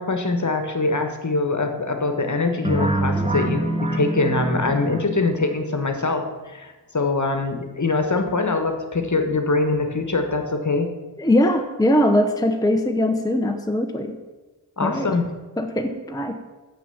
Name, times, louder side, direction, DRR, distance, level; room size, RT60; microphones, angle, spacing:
voice 1, 0.0-10.9 14.8-15.3, left 3 dB, 40° left, 6 dB, 1.3 m, -23 dB
sound 1, 2.6-5.5, right 2 dB, 15° right, 1.0 m, -25 dB
voice 2, 11.2-14.2 14.8-15.1 15.6-16.4, left 1 dB, 10° left, 4 dB, 0.7 m, -21 dB
7.3 x 6.0 x 7.0 m, 1.2 s
cardioid pair, 45°, 45 cm